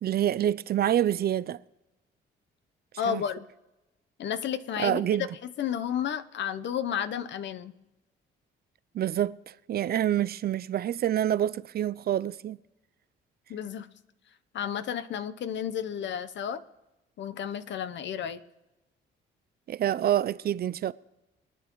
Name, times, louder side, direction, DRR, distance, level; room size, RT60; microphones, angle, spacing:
voice 1, 0.0-1.6 3.1-3.2 4.8-5.3 8.9-12.6 19.7-20.9, right 11 dB, 50° right, 0.4 m, -27 dB
voice 2, 3.0-3.4 4.2-5.2 5.6-7.7 13.5-13.9 14.5-16.6 17.2-18.4, left 9 dB, 65° left, 0.8 m, -32 dB
23.5 x 9.4 x 3.1 m
cardioid pair, 90°, 20 cm